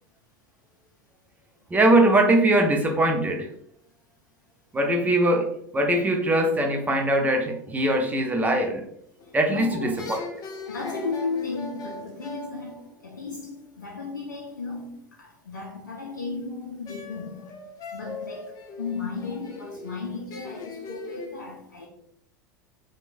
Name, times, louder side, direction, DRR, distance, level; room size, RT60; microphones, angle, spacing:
voice 1, 1.7-3.5 4.7-5.5 5.7-8.8 9.3-10.2, right 1 dB, 15° right, 0.5 m, -21 dB
voice 2, 9.2-10.1 10.7-17.6 17.9-21.9, left 4 dB, 85° left, 0.5 m, -35 dB
sound 1, 9.2-9.6 10.0-13.6 16.9-21.3, left 3 dB, 40° left, 0.6 m, -40 dB
3.0 x 2.2 x 2.5 m
hypercardioid pair, 80°, 10 cm